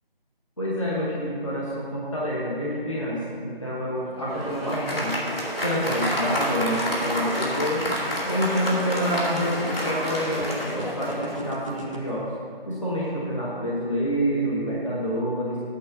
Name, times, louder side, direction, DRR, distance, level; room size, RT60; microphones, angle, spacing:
voice 1, 0.6-5.2 5.6-7.8 8.3-12.3 12.6-15.6, equal, 35° left, -7 dB, 1.1 m, -27 dB
Applause, 4.1-11.6, equal, 75° left, 2.6 m, -30 dB
sound 1, 4.3-11.4, equal, 90° left, 2.2 m, -37 dB
sound 2, 5.7-12.0, right 1 dB, 35° right, 0.9 m, -37 dB
8.5 x 4.8 x 7.5 m, 2.1 s
figure-of-eight pair, 170°, 30 cm